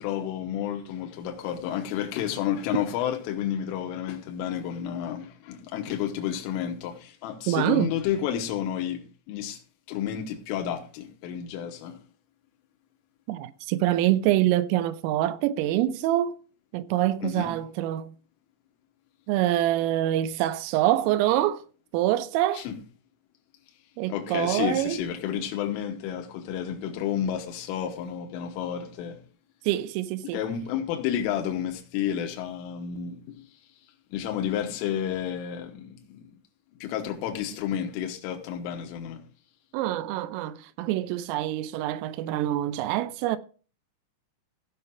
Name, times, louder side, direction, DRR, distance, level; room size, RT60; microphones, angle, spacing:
voice 1, 0.0-9.6 9.9-12.0 17.2-17.5 22.5-22.8 24.1-29.2 30.2-33.4 34.1-36.3 36.8-39.2, left 9 dB, 80° left, 3.5 m, -31 dB
voice 2, 7.5-7.9 13.3-16.4 16.7-18.1 19.3-21.6 21.9-22.6 24.0-25.0 29.7-30.4 39.7-43.4, right 13 dB, 85° right, 3.2 m, -25 dB
16.0 x 5.7 x 4.1 m
omnidirectional pair, 6.0 m